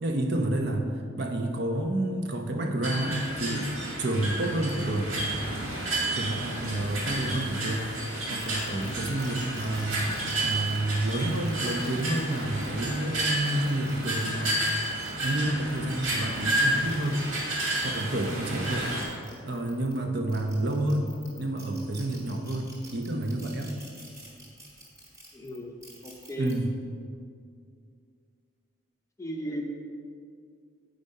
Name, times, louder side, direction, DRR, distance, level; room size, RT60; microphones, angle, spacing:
voice 1, 0.0-3.7 4.0-5.3 6.1-10.1 10.4-14.6 15.2-17.2 17.8-18.9 19.5-21.1 21.4-23.7 26.4-26.7, right 1 dB, 55° right, 3 dB, 0.8 m, -29 dB
sound 1, 2.8-19.0, right 1 dB, 75° right, 2.1 m, -31 dB
sound 2, 8.4-12.7 13.3-15.3 15.7-20.0 20.3-26.5, right 1 dB, 15° right, 1.5 m, -51 dB
voice 2, 25.3-25.7 26.0-26.5 29.2-29.7, equal, 15° left, 1 dB, 0.6 m, -36 dB
8.5 x 5.2 x 5.4 m, 2.3 s
head